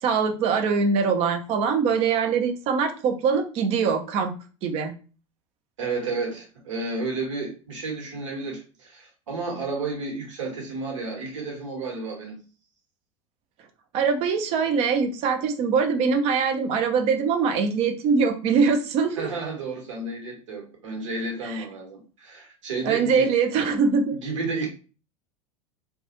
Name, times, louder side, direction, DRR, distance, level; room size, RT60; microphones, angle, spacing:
voice 1, 0.0-4.3 4.6-4.9 13.9-19.3 21.4-21.6 22.8-24.2, right 5 dB, 35° right, 6 dB, 0.5 m, -23 dB
voice 2, 5.8-12.4 19.1-23.3 24.2-24.7, right 3 dB, 65° right, 0 dB, 1.1 m, -31 dB
2.3 x 2.2 x 2.8 m, 0.35 s
figure-of-eight pair, 80°, 17 cm